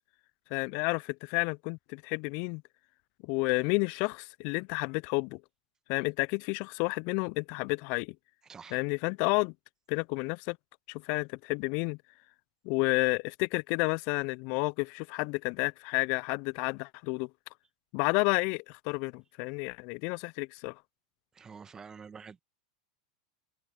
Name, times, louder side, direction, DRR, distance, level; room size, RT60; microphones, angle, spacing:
voice 1, 0.5-2.6 3.2-5.4 5.9-8.1 8.7-9.5 9.9-10.6 10.9-12.0 12.6-17.3 17.9-20.8, left 31 dB, 50° left, 0.7 m, -31 dB
voice 2, 21.4-22.4, right 6 dB, 20° right, 1.7 m, -47 dB
figure-of-eight pair, 90°, 3 cm